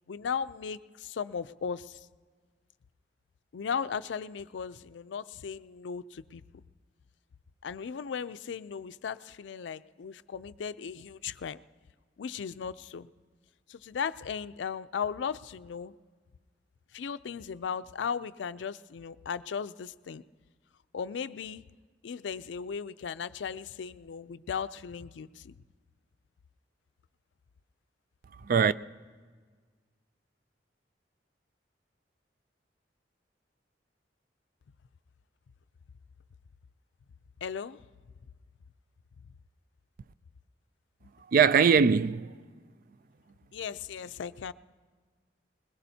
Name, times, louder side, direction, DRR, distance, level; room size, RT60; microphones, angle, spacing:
voice 1, 0.1-2.0 3.5-6.6 7.6-11.6 12.2-13.1 13.7-15.9 16.9-20.2 20.9-21.6 22.0-25.5 37.4-37.8 43.5-44.5, left 6 dB, 85° left, 0.4 m, -36 dB
voice 2, 41.3-42.3, right 6 dB, 50° right, 0.3 m, -21 dB
21.0 x 21.0 x 2.8 m
head